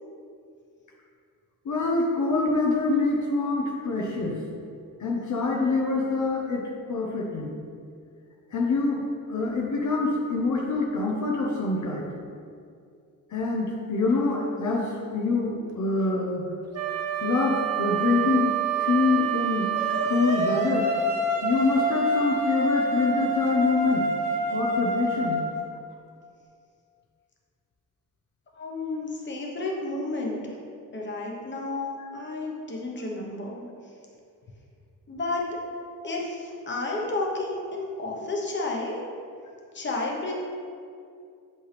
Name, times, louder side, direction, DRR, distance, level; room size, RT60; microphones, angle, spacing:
voice 1, 1.6-4.3 5.0-7.5 8.5-9.0 9.3-12.1 13.3-16.5 17.2-18.5 18.8-19.7 20.0-20.9 21.4-24.0 24.5-25.4 32.0-32.1, left 3 dB, 55° left, -2 dB, 0.9 m, -25 dB
Wind instrument woodwind instrument, 16.7-20.7, right 12 dB, 45° right, 0.7 m, -28 dB
sound 1, 19.7-25.5, equal, 20° right, 1.1 m, -27 dB
voice 2, 28.5-30.5 30.9-33.9 35.1-35.4 36.0-39.0 39.7-40.3, left 2 dB, 30° left, -2 dB, 1.1 m, -31 dB
7.9 x 5.4 x 3.4 m, 2.4 s
wide cardioid pair, 145°, 35 cm